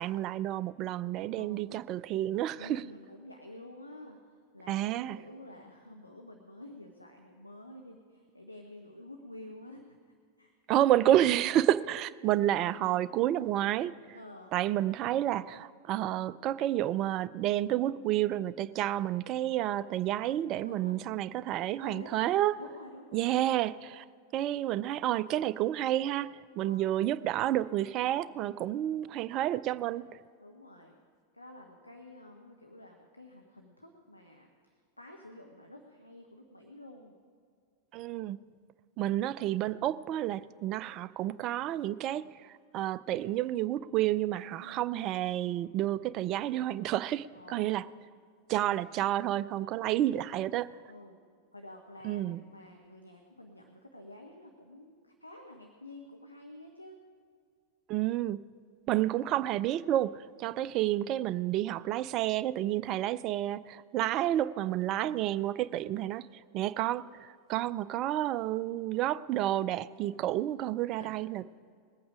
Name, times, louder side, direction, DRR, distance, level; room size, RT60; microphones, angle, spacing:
voice 1, 0.0-2.8 4.7-5.2 10.7-13.9 14.5-22.5 23.1-24.0 24.3-26.3 26.6-30.0 37.9-38.4 39.0-42.2 42.7-47.9 48.5-50.7 52.0-52.4 57.9-58.4 58.9-66.3 66.5-71.4, right 13 dB, 35° right, 16 dB, 0.3 m, -30 dB
voice 2, 1.3-1.8 2.6-4.2 4.5-9.8 10.4-10.5 14.1-14.5 20.6-21.0 21.8-22.2 22.6-23.3 26.6-26.9 30.4-31.0 31.3-34.5 35.0-37.1 44.6-44.9 47.3-47.9 50.9-51.2 51.5-57.0 60.6-60.8 71.0-71.2, left 1 dB, 85° left, 2 dB, 1.0 m, -50 dB
20.0 x 8.6 x 5.0 m, 2.2 s
figure-of-eight pair, 90°, 0 cm